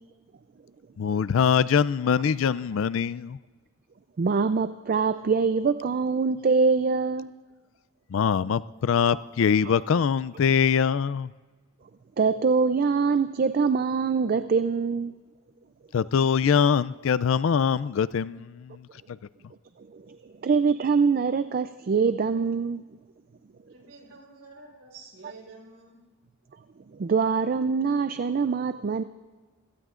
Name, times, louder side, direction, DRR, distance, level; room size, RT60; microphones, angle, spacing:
voice 1, 1.0-3.4 8.1-11.3 15.9-18.9, left 7 dB, 65° left, 18 dB, 0.4 m, -23 dB
voice 2, 4.2-7.3 9.6-9.8 12.2-15.1 19.9-20.2 20.4-22.8 27.0-29.0, right 5 dB, 45° right, 11 dB, 0.4 m, -24 dB
voice 3, 23.7-26.0, right 3 dB, 65° right, 0 dB, 4.4 m, -49 dB
26.0 x 17.0 x 2.5 m, 1.4 s
head